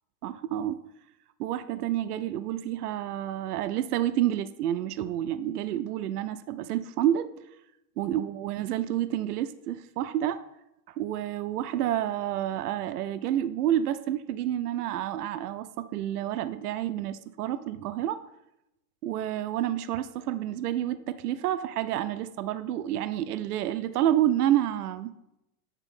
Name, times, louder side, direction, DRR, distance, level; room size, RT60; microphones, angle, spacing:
voice 1, 0.2-0.8 1.4-7.3 8.0-10.4 11.0-18.2 19.0-25.1, right 12 dB, 80° right, 12 dB, 0.6 m, -29 dB
8.3 x 3.7 x 5.4 m, 0.86 s
supercardioid pair, 160°, 45 cm